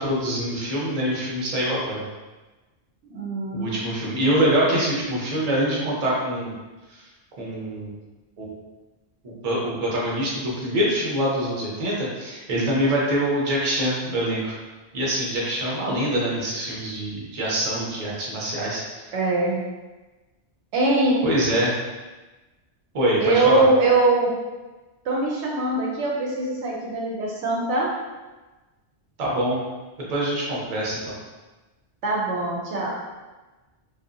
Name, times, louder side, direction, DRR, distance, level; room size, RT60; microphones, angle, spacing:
voice 1, 0.0-2.0 3.5-6.5 7.4-7.9 8.4-8.5 9.2-14.5 14.9-18.8 21.2-21.7 22.9-23.7 29.2-29.6 30.1-31.1, right 1 dB, 40° right, -4 dB, 0.6 m, -24 dB
voice 2, 3.0-4.1 19.1-19.6 20.7-21.2 23.2-24.3 25.0-27.9 32.0-32.9, right 2 dB, 75° right, -3 dB, 0.8 m, -22 dB
2.7 x 2.3 x 2.5 m, 1.2 s
omnidirectional pair, 1.2 m